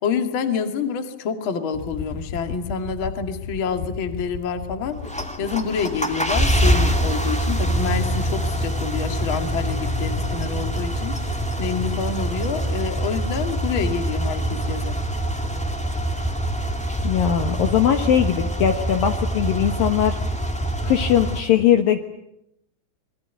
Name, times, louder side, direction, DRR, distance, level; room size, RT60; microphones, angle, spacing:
voice 1, 0.0-5.0 5.4-15.0, left 6 dB, 40° left, 7 dB, 2.1 m, -27 dB
sound 1, 1.7-13.8, left 8 dB, 85° left, 3.6 m, -38 dB
sound 2, 4.9-21.4, right 1 dB, 5° left, 0.9 m, -25 dB
voice 2, 17.0-20.2 20.8-22.0, left 10 dB, 65° left, 6 dB, 2.6 m, -20 dB
27.0 x 22.5 x 9.3 m, 0.82 s
omnidirectional pair, 5.2 m